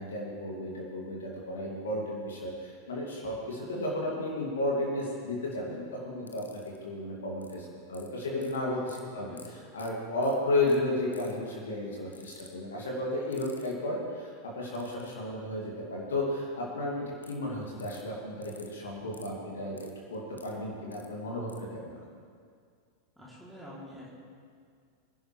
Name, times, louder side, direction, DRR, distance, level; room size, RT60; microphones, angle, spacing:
voice 1, 0.0-9.4 9.7-19.8 20.1-22.0, left 1 dB, 65° left, -3 dB, 2.6 m, -33 dB
sound 1, 6.3-6.8 7.4-7.5 7.9-8.6 8.9-9.0 9.4-9.5 9.8-9.9 10.2-10.3 10.7-10.8 11.1-11.4 12.1-12.5 13.3-13.7 14.7-15.1 17.2-17.3 17.8-18.0 18.4-18.7 19.1-19.3 19.8-20.5 20.9-21.1 21.5-21.6, left 3 dB, 80° left, 1.0 m, -50 dB
voice 2, 9.2-9.5 23.2-24.1, equal, 5° right, -7 dB, 3.3 m, -47 dB
22.5 x 11.0 x 3.4 m, 2.2 s
figure-of-eight pair, 90°, 0 cm